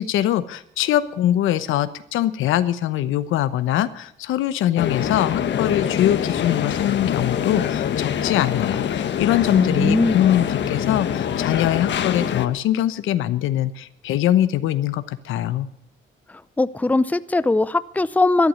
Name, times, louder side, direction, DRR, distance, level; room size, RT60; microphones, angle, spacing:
voice 1, 0.0-15.7, left 12 dB, 90° left, 13 dB, 1.0 m, -22 dB
sound 1, 4.8-12.5, left 8 dB, 65° left, 1.3 m, -24 dB
voice 2, 9.5-10.2 16.3-18.5, left 2 dB, 10° left, 16 dB, 0.6 m, -20 dB
13.0 x 11.0 x 9.4 m, 0.71 s
cardioid pair, 90°, 20 cm